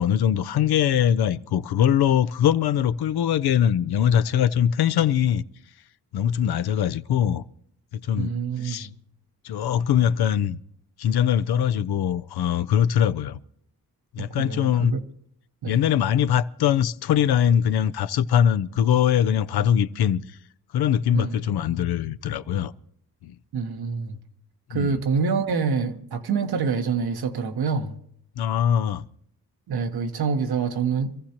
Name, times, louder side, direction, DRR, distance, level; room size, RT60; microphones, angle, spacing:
voice 1, 0.0-5.4 6.1-7.4 7.9-8.3 8.6-8.9 9.4-10.6 11.0-13.4 14.1-14.9 15.7-20.2 20.7-22.7 23.2-23.4 24.7-25.0 28.4-29.1, left 9 dB, 85° left, 0.6 m, -22 dB
voice 2, 8.2-8.9 14.2-15.0 15.6-15.8 21.1-21.4 23.5-24.2 24.7-28.0 29.7-31.1, right 5 dB, 80° right, 1.3 m, -26 dB
26.0 x 14.5 x 2.9 m
cardioid pair, 65°, 37 cm